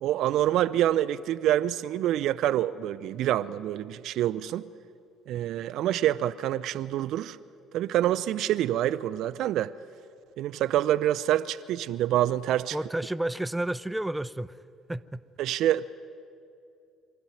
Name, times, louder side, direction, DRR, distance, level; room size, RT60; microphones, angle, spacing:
voice 1, 0.0-4.7 5.3-7.4 7.7-9.7 10.4-12.8 15.4-15.9, right 12 dB, 55° right, 0.4 m, -26 dB
voice 2, 12.7-14.6 14.9-15.2, right 1 dB, 10° right, 0.6 m, -31 dB
23.5 x 14.0 x 9.3 m
figure-of-eight pair, 50°, 0 cm